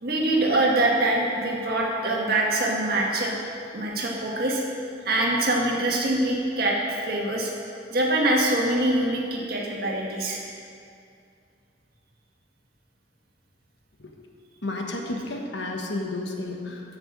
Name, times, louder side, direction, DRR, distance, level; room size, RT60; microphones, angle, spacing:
voice 1, 0.0-3.3 3.7-4.6 5.1-7.5 7.9-10.5, right 1 dB, 55° right, -2 dB, 1.8 m, -24 dB
voice 2, 14.6-17.0, left 2 dB, 70° left, 2 dB, 1.2 m, -32 dB
9.1 x 6.9 x 7.4 m, 2.4 s
head